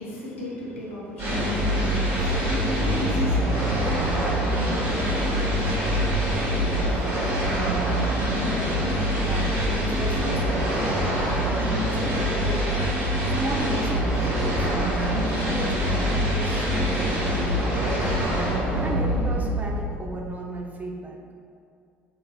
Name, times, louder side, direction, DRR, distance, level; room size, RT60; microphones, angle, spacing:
voice 1, 0.0-7.8, left 1 dB, 80° left, -6 dB, 1.0 m, -38 dB
sound 1, 1.2-20.2, equal, 45° right, 1.4 m, -24 dB
voice 2, 9.2-12.7 13.2-15.0 15.3-18.3 18.8-21.2, right 1 dB, 25° right, 0 dB, 0.6 m, -36 dB
5.5 x 3.8 x 2.3 m, 2.3 s
figure-of-eight pair, 55°, 7 cm